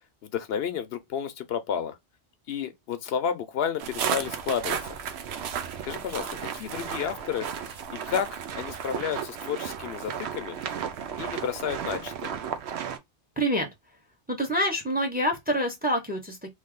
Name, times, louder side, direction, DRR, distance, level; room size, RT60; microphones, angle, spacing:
voice 1, 0.2-2.0 2.5-5.0 5.8-7.5 7.9-10.6 11.2-12.3, left 8 dB, 75° left, 0.8 m, -31 dB
sound 1, 3.8-13.0, right 8 dB, 80° right, 0.9 m, -34 dB
sound 2, 4.0-7.8 8.4-8.6 9.1-9.2 10.4-12.1, right 1 dB, 35° right, 1.6 m, -49 dB
voice 2, 13.4-13.7 14.3-16.5, equal, 10° right, 0.7 m, -26 dB
3.2 x 2.5 x 3.6 m
omnidirectional pair, 1.1 m